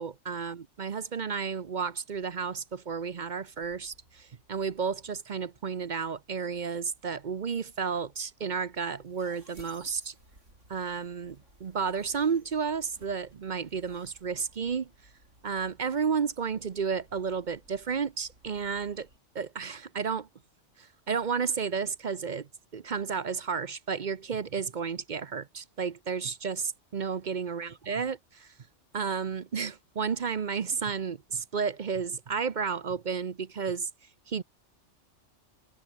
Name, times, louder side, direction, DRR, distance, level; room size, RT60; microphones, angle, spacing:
voice 1, 0.0-10.1 10.7-14.9 15.4-19.1 19.3-20.3 20.8-28.5 28.9-33.9 34.3-34.4, right 6 dB, 45° right, 0.8 m, -32 dB
sound 1, 2.7-19.2, right 1 dB, 80° right, 8.0 m, -60 dB
omnidirectional pair, 1.2 m